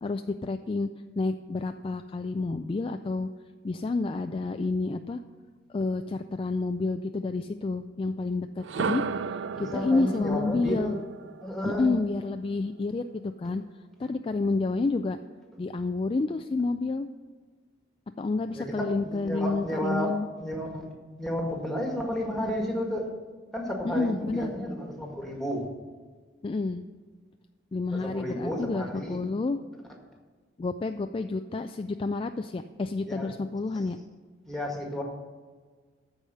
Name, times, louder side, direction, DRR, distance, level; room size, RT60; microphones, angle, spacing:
voice 1, 0.0-0.9 1.2-3.3 3.6-5.2 5.7-9.0 9.6-11.0 11.6-13.6 14.0-15.2 15.6-17.1 18.2-20.3 23.8-24.5 26.4-26.8 27.7-29.6 30.6-34.0, left 3 dB, 30° left, 8 dB, 0.3 m, -29 dB
sound 1, 8.6-12.6, right 5 dB, 75° right, 0.4 m, -35 dB
voice 2, 9.5-11.0 11.4-12.0 18.5-20.9 21.2-23.1 23.5-25.7 27.9-29.2 33.1-33.3 34.5-35.0, equal, ahead, 0 dB, 1.7 m, -32 dB
13.5 x 4.8 x 6.7 m, 1.5 s
head